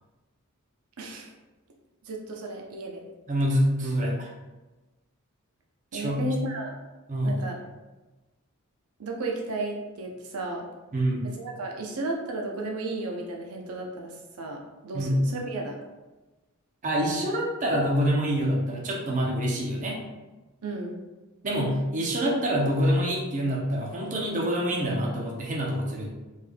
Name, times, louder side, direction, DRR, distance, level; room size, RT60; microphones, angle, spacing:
voice 1, 1.0-1.3 2.0-3.0 5.9-6.8 7.2-7.6 9.0-10.7 11.3-15.8 20.6-21.0, right 2 dB, 85° right, 0 dB, 0.6 m, -34 dB
voice 2, 3.3-4.3 5.9-6.3 7.1-7.4 10.9-11.3 14.9-15.3 16.8-20.0 21.4-26.1, equal, 35° right, -2 dB, 0.6 m, -26 dB
3.5 x 3.3 x 2.2 m, 1.1 s
head